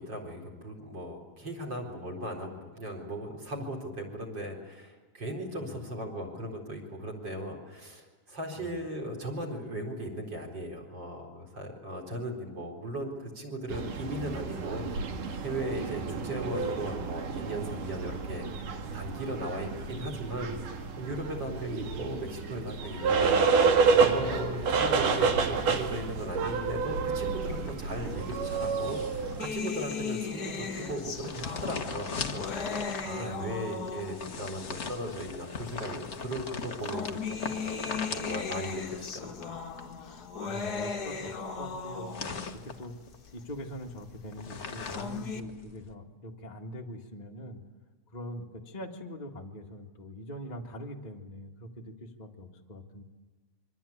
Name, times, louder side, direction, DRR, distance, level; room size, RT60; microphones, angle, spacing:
voice 1, 0.0-14.9 15.2-39.5, right 1 dB, 35° right, 4 dB, 4.8 m, -37 dB
sound 1, 13.7-29.5, right 5 dB, 80° right, 3.6 m, -29 dB
voice 2, 23.7-24.5 33.1-33.5 40.4-42.9 43.3-47.6 48.1-53.0, equal, 20° left, 0 dB, 1.3 m, -43 dB
sound 2, 27.6-45.9, left 4 dB, 60° left, 0.7 m, -41 dB
sound 3, 29.4-34.5 35.4-35.5 36.6-42.5 44.6-45.4, left 5 dB, 40° left, 1.5 m, -37 dB
26.0 x 24.5 x 8.6 m, 1.3 s
omnidirectional pair, 3.6 m